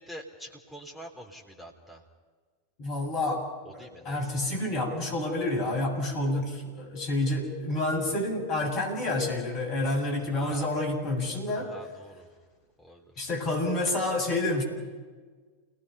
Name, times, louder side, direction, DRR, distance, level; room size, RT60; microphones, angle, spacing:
voice 1, 0.0-2.0 3.6-4.3 7.9-8.1 10.3-10.7 11.6-12.3 12.8-13.0, equal, ahead, -1 dB, 3.7 m, -45 dB
voice 2, 2.8-3.5 3.7-11.7 13.2-14.6, left 2 dB, 40° left, 1 dB, 7.5 m, -29 dB
29.0 x 19.5 x 5.5 m, 1.5 s
figure-of-eight pair, 90°, 0 cm